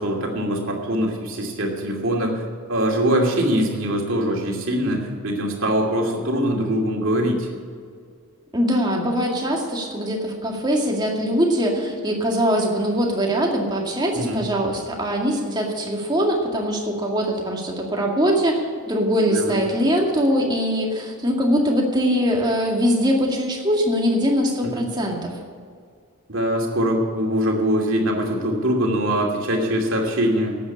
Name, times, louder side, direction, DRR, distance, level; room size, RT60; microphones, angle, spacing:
voice 1, 0.0-7.5 14.1-14.4 19.3-19.6 24.6-24.9 26.3-30.6, equal, 60° right, 0 dB, 2.7 m, -23 dB
voice 2, 8.5-25.4, equal, 20° right, 0 dB, 2.1 m, -22 dB
12.0 x 8.6 x 8.6 m, 2.1 s
head